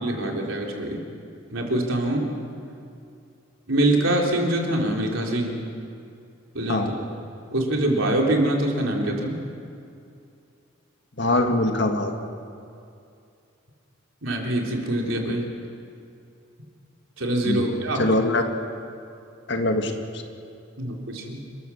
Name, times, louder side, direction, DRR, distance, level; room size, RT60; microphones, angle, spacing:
voice 1, 0.0-1.0 1.5-2.3 3.7-5.6 6.5-7.0 7.5-9.4 14.2-15.5 17.2-18.2 20.8-21.4, right 1 dB, 75° right, 0 dB, 3.5 m, -24 dB
voice 2, 11.2-12.1 17.4-17.7 18.0-18.4 19.5-19.9, left 2 dB, 55° left, 4 dB, 1.9 m, -22 dB
29.5 x 14.0 x 7.1 m, 2.5 s
head